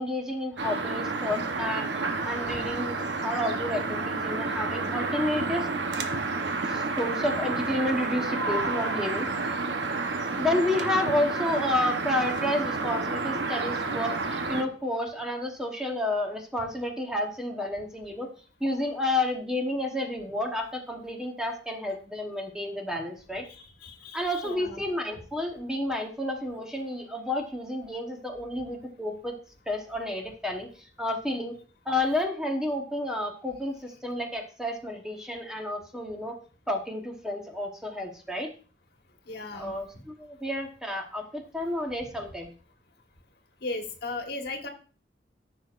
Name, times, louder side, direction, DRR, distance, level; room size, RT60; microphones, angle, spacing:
voice 1, 0.0-1.9 2.2-3.0 3.2-5.7 6.7-9.3 10.4-18.3 18.6-23.4 24.1-29.3 29.7-30.7 31.0-31.5 31.9-36.4 36.7-38.5 39.6-42.5, left 1 dB, 5° right, 2 dB, 1.0 m, -30 dB
sound 1, 0.6-14.6, right 3 dB, 70° right, 0.9 m, -30 dB
voice 2, 23.4-24.8 39.3-39.7 43.6-44.7, left 2 dB, 60° left, 4 dB, 1.4 m, -37 dB
14.0 x 6.0 x 2.5 m, 0.38 s
head